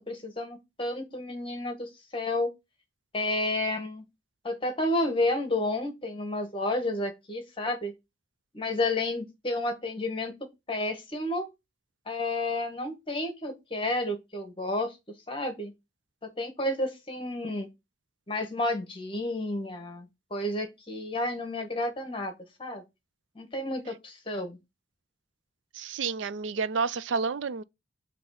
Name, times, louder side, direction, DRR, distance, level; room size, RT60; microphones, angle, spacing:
voice 1, 0.1-2.5 3.1-4.0 4.4-7.9 8.5-11.5 12.1-15.0 15.3-15.7 16.2-17.7 18.3-22.3 22.6-22.8 23.3-24.6, left 2 dB, 30° left, 1.2 m, -31 dB
voice 2, 25.7-27.6, right 5 dB, 80° right, 0.4 m, -30 dB
6.9 x 3.0 x 5.6 m
head